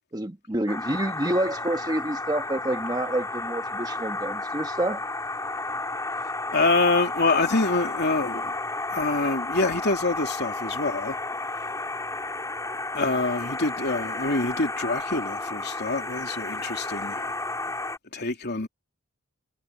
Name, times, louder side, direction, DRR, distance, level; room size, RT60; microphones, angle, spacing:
voice 1, 0.1-5.0, right 1 dB, 20° right, 1.4 m, -28 dB
sound 1, 0.7-18.0, left 2 dB, 15° left, 3.4 m, -32 dB
voice 2, 6.5-8.6 8.9-11.2 12.9-17.3 18.1-18.7, left 3 dB, 50° left, 3.1 m, -26 dB
head